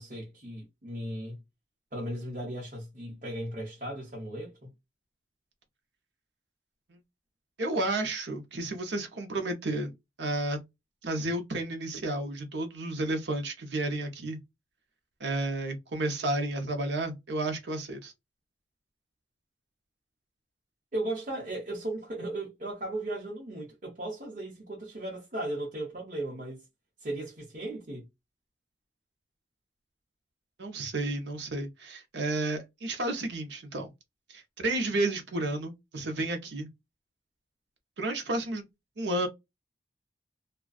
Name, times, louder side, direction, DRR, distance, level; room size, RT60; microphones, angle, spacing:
voice 1, 0.0-1.4 1.9-4.7 20.9-26.6 27.0-28.1, right 1 dB, 45° right, 0.9 m, -36 dB
voice 2, 7.6-10.6 11.0-14.4 15.2-18.1 30.6-33.9 34.3-36.7 38.0-38.7 39.0-39.3, right 2 dB, 75° right, 0.7 m, -32 dB
2.5 x 2.2 x 2.3 m
head